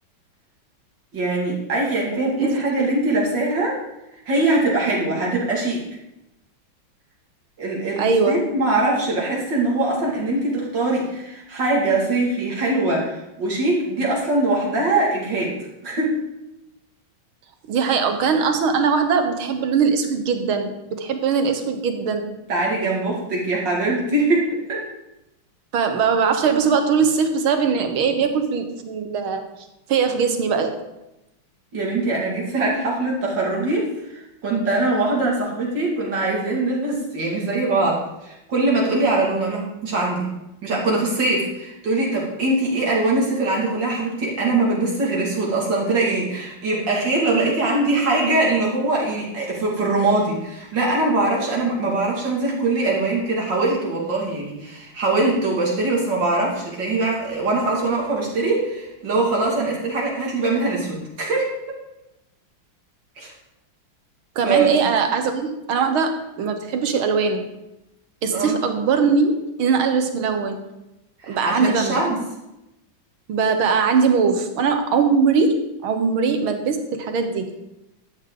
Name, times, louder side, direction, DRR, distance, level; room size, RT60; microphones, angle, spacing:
voice 1, 1.1-3.8 4.3-5.8 7.6-15.5 15.8-16.2 22.5-24.8 31.7-40.3 40.6-61.5 63.2-63.3 64.4-64.8 68.3-68.6 71.2-72.2, right 2 dB, 60° right, -4 dB, 3.1 m, -22 dB
voice 2, 8.0-8.5 17.7-22.3 25.7-29.4 29.9-30.7 64.4-67.5 68.2-70.7 71.3-72.0 73.3-77.5, right 5 dB, 85° right, 7 dB, 2.1 m, -21 dB
13.0 x 10.0 x 3.9 m, 0.92 s
omnidirectional pair, 2.2 m